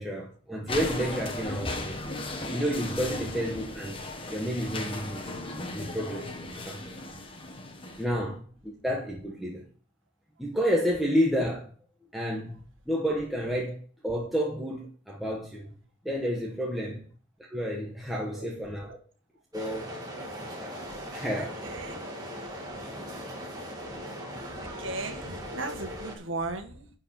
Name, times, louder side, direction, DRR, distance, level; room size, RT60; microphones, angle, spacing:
voice 1, 0.0-2.0 2.4-4.0 4.3-5.3 5.7-6.3 6.7-6.8 8.0-9.7 10.4-11.7 12.1-12.6 12.9-15.7 16.0-17.0 17.5-19.0 19.5-19.9 20.6-21.5, equal, ahead, 1.1 m, -30 dB
sound 1, 0.7-8.0, left 2 dB, 25° left, 1.2 m, -36 dB
sound 2, 19.5-26.2, equal, 20° right, 1.9 m, -39 dB
voice 2, 21.3-22.1 24.6-26.9, right 3 dB, 75° right, 1.6 m, -37 dB
11.0 x 4.6 x 5.8 m
head